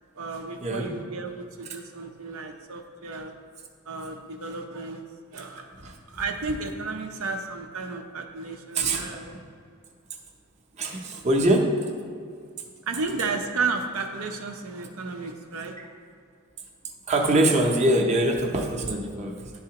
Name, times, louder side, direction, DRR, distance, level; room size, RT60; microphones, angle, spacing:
voice 1, 0.2-3.3 3.9-5.0 5.3-9.3 12.8-15.8, right 4 dB, 80° right, 4 dB, 0.6 m, -33 dB
voice 2, 8.7-9.4 10.8-11.7 15.8-15.9 17.1-19.5, right 1 dB, 30° right, 0 dB, 0.6 m, -23 dB
10.5 x 4.0 x 2.9 m, 2.2 s
head